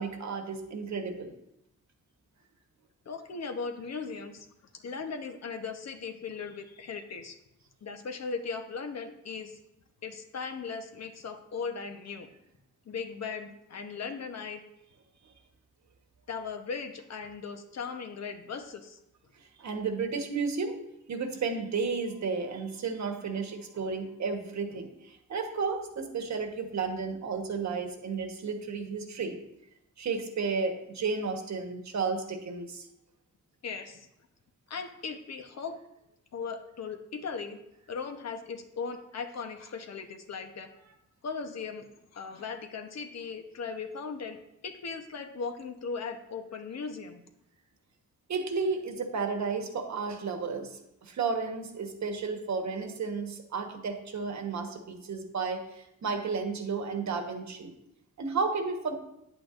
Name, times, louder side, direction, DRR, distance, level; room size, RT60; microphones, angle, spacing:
voice 1, 0.0-1.3 15.2-15.3 19.6-20.8 21.1-29.4 30.0-32.9 48.3-57.7 58.2-59.0, right 4 dB, 65° right, 5 dB, 1.2 m, -33 dB
voice 2, 3.1-4.5 4.7-7.4 7.8-9.6 10.0-12.3 12.9-14.6 16.3-19.0 33.6-34.1 34.7-35.7 36.3-37.6 37.9-40.7 41.2-41.9 42.1-44.4 44.6-47.2, left 5 dB, 55° left, 6 dB, 0.9 m, -38 dB
9.8 x 8.4 x 2.5 m, 0.83 s
cardioid pair, 110°, 31 cm